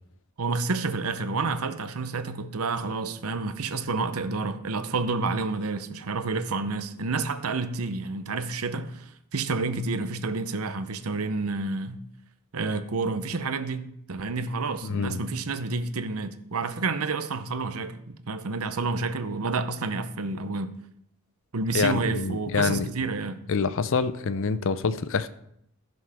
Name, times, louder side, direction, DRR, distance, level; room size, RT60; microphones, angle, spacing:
voice 1, 0.4-12.0 12.5-20.7 21.5-23.4, right 3 dB, 70° right, 0.8 m, -29 dB
voice 2, 14.8-15.2 21.7-22.9 23.5-25.3, left 5 dB, 60° left, 0.6 m, -26 dB
16.0 x 6.2 x 3.5 m
head